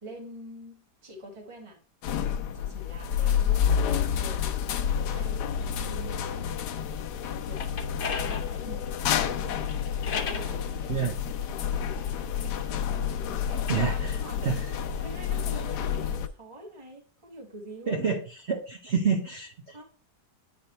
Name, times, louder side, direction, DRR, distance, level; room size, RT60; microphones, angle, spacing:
voice 1, 0.0-1.8 2.5-3.7 4.1-5.5 5.8-6.6 7.2-9.8 10.1-11.1 11.5-12.7 13.1-14.6 15.0-18.0 19.7-19.8, right 1 dB, 20° right, -1 dB, 1.4 m, -46 dB
sound 1, 2.0-16.3, left 8 dB, 80° left, 1.2 m, -29 dB
sound 2, 7.3-10.5 11.3-13.0 13.5-15.8, left 6 dB, 50° left, 0.7 m, -39 dB
voice 2, 13.7-14.6 17.9-18.2 18.5-19.8, right 6 dB, 50° right, 1 dB, 1.0 m, -28 dB
8.5 x 3.5 x 4.3 m, 0.38 s
omnidirectional pair, 1.8 m